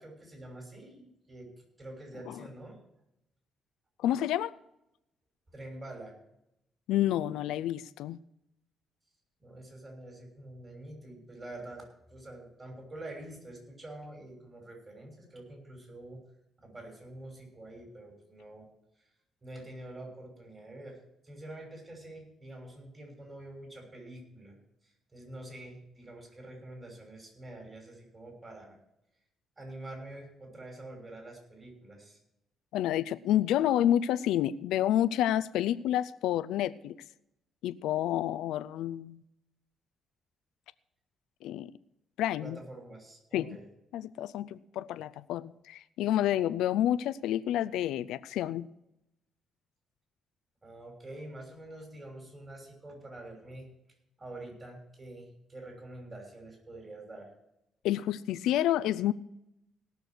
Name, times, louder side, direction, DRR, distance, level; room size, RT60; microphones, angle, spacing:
voice 1, 0.0-2.8 5.5-6.1 9.4-16.2 16.6-18.7 19.4-21.0 21.2-24.6 24.8-28.8 29.6-32.2 42.4-43.6 50.6-53.7 54.2-57.3, right 1 dB, 30° right, 1 dB, 6.2 m, -46 dB
voice 2, 4.0-4.5 6.9-8.2 32.7-37.0 37.6-39.2 41.4-41.7 42.2-42.6 43.3-43.6 43.9-48.7 57.8-59.1, left 12 dB, 90° left, 14 dB, 0.4 m, -29 dB
18.0 x 6.7 x 6.1 m, 0.83 s
cardioid pair, 90°, 0 cm